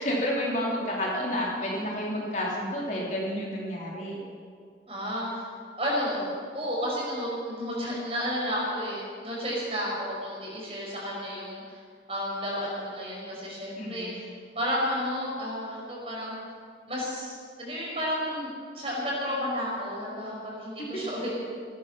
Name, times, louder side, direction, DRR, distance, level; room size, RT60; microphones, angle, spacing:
voice 1, 0.0-4.2 13.8-14.1, equal, 40° left, -3 dB, 3.0 m, -30 dB
voice 2, 4.9-5.4 5.8-11.8 12.1-14.3 14.5-16.4 16.9-21.3, equal, 35° right, -5 dB, 5.6 m, -32 dB
18.0 x 12.5 x 5.9 m, 2.1 s
head